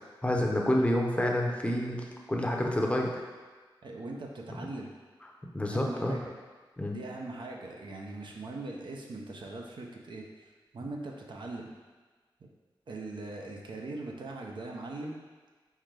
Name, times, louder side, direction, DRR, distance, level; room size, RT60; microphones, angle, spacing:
voice 1, 0.2-3.2 5.5-6.2 6.8-7.0, left 1 dB, 15° left, 0 dB, 0.6 m, -28 dB
voice 2, 3.8-4.9 5.7-6.3 6.9-10.2 10.7-11.7 12.4-12.5 12.9-15.2, right 2 dB, 70° right, 0 dB, 0.6 m, -40 dB
4.3 x 3.7 x 3.2 m, 1.4 s
wide cardioid pair, 75°, 8 cm